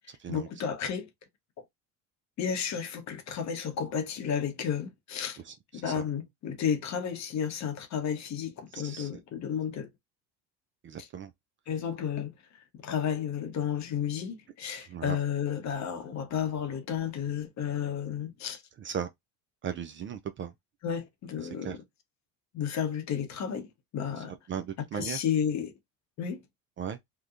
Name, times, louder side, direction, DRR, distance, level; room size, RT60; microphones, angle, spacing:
voice 1, 0.3-1.1 1.6-1.7 2.4-5.4 5.7-9.9 11.7-12.3 12.7-18.6 20.8-21.8 22.5-23.7 23.9-24.3 24.9-25.7 26.2-26.4, left 8 dB, 45° left, 0.8 m, -32 dB
voice 2, 5.4-6.0 8.7-9.1 10.8-11.3 14.8-15.2 18.8-19.1 19.6-20.5 21.4-21.8 24.2-25.2 26.8-27.0, right 8 dB, 35° right, 0.4 m, -37 dB
2.7 x 2.2 x 2.4 m
supercardioid pair, 80°, 39 cm